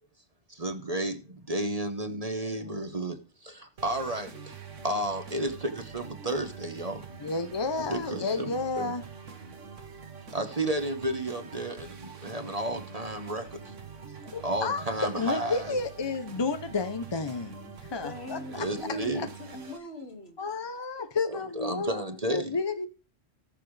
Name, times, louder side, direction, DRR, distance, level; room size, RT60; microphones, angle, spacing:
voice 1, 0.5-4.5 4.8-7.0 7.9-8.5 8.8-8.9 10.3-13.9 14.4-15.8 18.6-19.3 21.3-22.6, right 1 dB, 35° right, 1.1 m, -32 dB
sound 1, 3.8-19.8, right 5 dB, 80° right, 1.6 m, -45 dB
voice 2, 4.2-5.0 18.0-20.4, left 2 dB, 55° left, 2.3 m, -43 dB
voice 3, 7.2-9.0 14.3-14.8 15.2-18.7 19.2-19.3 20.4-22.9, left 4 dB, 30° left, 0.5 m, -31 dB
18.5 x 6.8 x 3.2 m
omnidirectional pair, 1.2 m